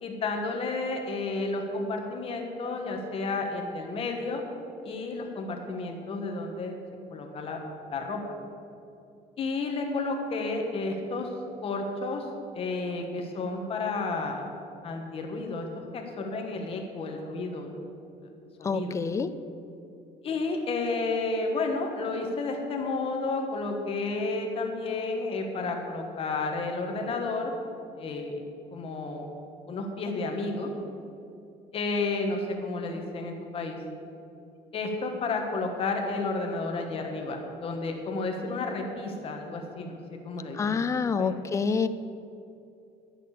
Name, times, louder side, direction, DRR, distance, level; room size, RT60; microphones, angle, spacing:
voice 1, 0.0-4.4 4.8-6.8 7.1-7.6 7.9-8.2 9.4-11.3 11.6-12.2 12.5-14.4 14.8-15.6 15.9-17.8 18.2-18.3 18.6-19.0 20.2-27.5 28.0-28.3 28.7-29.3 29.7-30.7 31.7-33.8 34.7-40.0 40.2-40.8 41.1-41.3, left 3 dB, 35° left, 2 dB, 1.5 m, -31 dB
voice 2, 18.6-19.3 40.5-41.9, left 5 dB, 20° left, 12 dB, 0.4 m, -27 dB
12.0 x 6.8 x 8.3 m, 2.6 s
cardioid pair, 180°, 16 cm